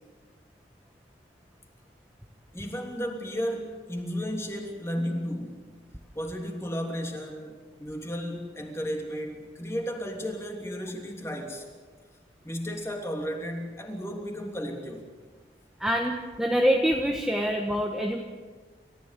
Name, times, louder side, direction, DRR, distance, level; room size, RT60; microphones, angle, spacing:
voice 1, 2.5-5.7 6.1-11.7 12.4-15.1, equal, 15° left, 2 dB, 3.1 m, -34 dB
voice 2, 15.8-18.2, equal, 5° right, 1 dB, 1.3 m, -25 dB
29.0 x 14.5 x 8.3 m, 1.5 s
head